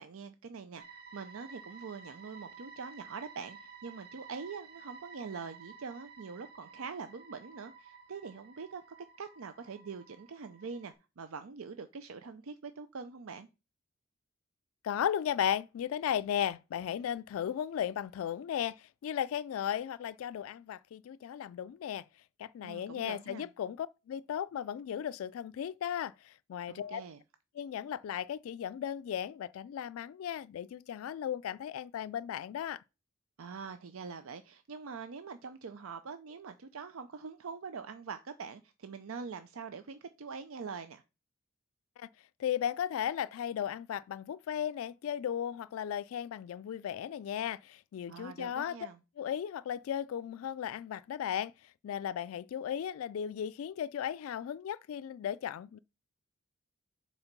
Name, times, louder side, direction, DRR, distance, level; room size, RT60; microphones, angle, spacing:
voice 1, 0.0-8.8 9.2-13.5 22.6-23.5 26.7-27.2 33.4-41.0 48.1-49.0, right 5 dB, 85° right, 0.6 m, -44 dB
sound 1, 0.8-10.9, right 5 dB, 50° right, 1.3 m, -53 dB
voice 2, 14.8-22.0 22.4-27.0 27.6-32.8 42.0-42.1 42.4-48.8 49.2-51.5 51.8-55.8, left 9 dB, 85° left, 0.3 m, -36 dB
7.1 x 4.3 x 5.2 m
head